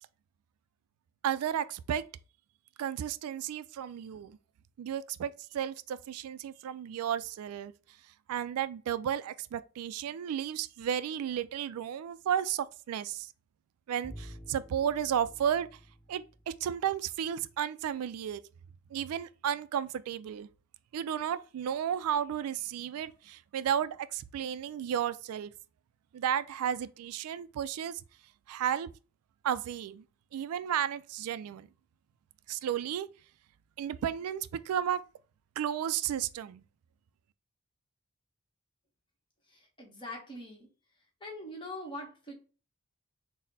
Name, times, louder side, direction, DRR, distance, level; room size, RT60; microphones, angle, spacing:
voice 1, 1.2-2.0 2.8-4.4 4.8-7.7 8.3-13.3 13.9-15.7 16.1-18.4 18.9-20.5 20.9-25.5 26.1-28.0 28.5-28.9 29.4-30.0 30.3-31.7 32.5-33.1 33.8-35.0 35.6-36.6, right 9 dB, 85° right, 0.3 m, -33 dB
Bowed string instrument, 14.0-17.1, equal, ahead, 0.6 m, -50 dB
voice 2, 39.8-40.7 41.2-42.3, left 1 dB, 20° left, 1.1 m, -42 dB
4.1 x 2.1 x 3.9 m
head